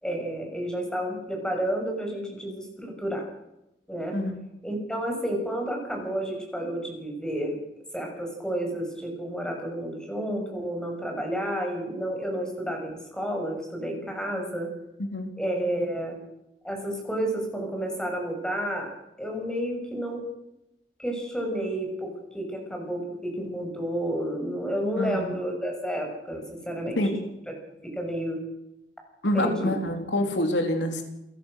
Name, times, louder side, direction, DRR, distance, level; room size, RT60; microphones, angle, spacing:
voice 1, 0.0-3.2 3.9-4.2 4.6-7.6 7.9-14.7 15.4-16.2 16.6-18.9 19.2-20.2 21.0-27.0 28.0-28.4 29.3-29.7, right 1 dB, 5° left, 2 dB, 6.6 m, -31 dB
voice 2, 15.0-15.3 25.0-25.3 27.0-27.2 29.2-31.0, left 1 dB, 85° left, 4 dB, 3.7 m, -26 dB
28.5 x 17.0 x 6.5 m, 0.88 s
head